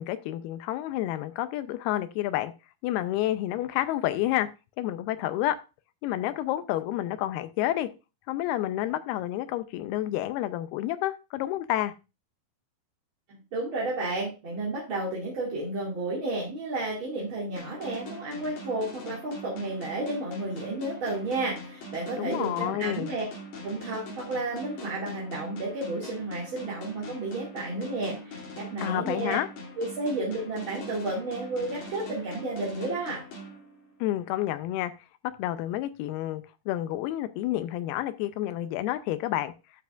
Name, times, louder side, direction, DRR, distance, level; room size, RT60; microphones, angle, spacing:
voice 1, 0.0-2.5 2.8-4.5 4.8-5.6 6.0-7.9 8.3-11.9 22.2-23.1 28.8-29.5 34.0-34.9 35.4-39.5, left 14 dB, 85° left, 2.6 m, -29 dB
voice 2, 13.3-23.2 23.6-29.4 29.8-33.2, right 2 dB, 40° right, 2.3 m, -32 dB
sound 1, 17.6-34.2, left 1 dB, 60° left, 4.0 m, -42 dB
12.5 x 5.8 x 2.4 m
omnidirectional pair, 4.6 m